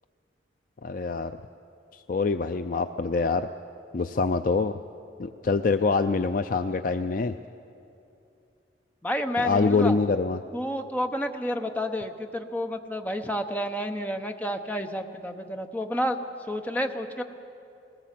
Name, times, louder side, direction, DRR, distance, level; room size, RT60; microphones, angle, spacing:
voice 1, 0.8-1.3 1.9-3.5 3.9-4.7 5.2-7.3 9.4-10.4, left 4 dB, 50° left, 9 dB, 0.4 m, -25 dB
voice 2, 9.0-10.0 10.5-16.2 16.5-17.2, equal, 10° left, 5 dB, 0.9 m, -30 dB
20.5 x 17.5 x 7.5 m, 2.7 s
head